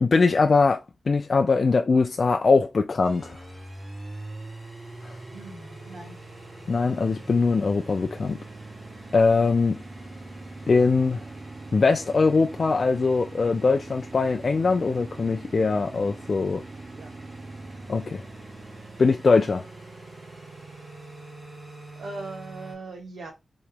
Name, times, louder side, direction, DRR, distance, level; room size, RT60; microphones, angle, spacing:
voice 1, 0.0-3.4 5.0-5.1 6.7-8.4 9.1-9.8 10.7-11.2 11.7-16.6 17.9-18.2 19.0-19.6, left 4 dB, 50° left, 0.3 m, -22 dB
sound 1, 3.0-22.7, right 2 dB, 50° right, 1.8 m, -42 dB
voice 2, 5.3-6.2 16.9-17.1 22.0-23.3, right 3 dB, 80° right, 1.5 m, -39 dB
3.4 x 3.0 x 3.4 m
wide cardioid pair, 110°, 0 cm